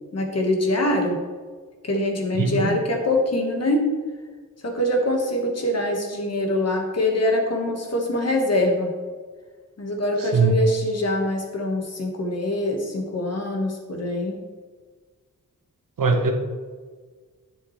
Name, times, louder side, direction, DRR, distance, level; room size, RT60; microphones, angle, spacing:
voice 1, 0.1-1.2 1.8-3.9 4.6-8.9 9.8-14.3, left 1 dB, 50° left, 1 dB, 1.6 m, -24 dB
voice 2, 2.3-2.8 10.2-10.6 16.0-16.3, right 4 dB, 90° right, 4 dB, 1.1 m, -21 dB
10.0 x 7.4 x 3.2 m, 1.5 s
wide cardioid pair, 120°, 32 cm